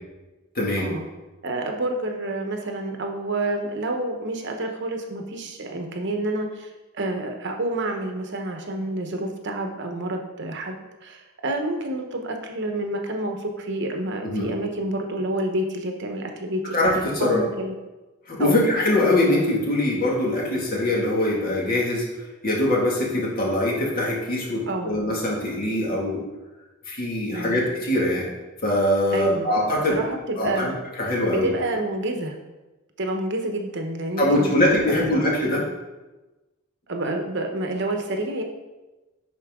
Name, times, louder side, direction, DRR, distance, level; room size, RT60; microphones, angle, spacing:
voice 1, 0.6-0.9 14.2-14.5 16.7-17.4 18.3-22.1 22.4-26.3 26.9-28.3 28.6-30.0 30.4-30.7 31.0-31.5 34.2-35.7, left 1 dB, 45° left, -3 dB, 2.0 m, -22 dB
voice 2, 1.4-16.8 17.2-17.7 18.4-18.6 24.7-24.9 27.3-27.6 29.1-29.5 29.9-30.8 31.3-32.4 33.0-35.2 36.9-38.4, right 1 dB, 55° right, 3 dB, 1.0 m, -28 dB
11.0 x 4.5 x 3.7 m, 1.1 s
head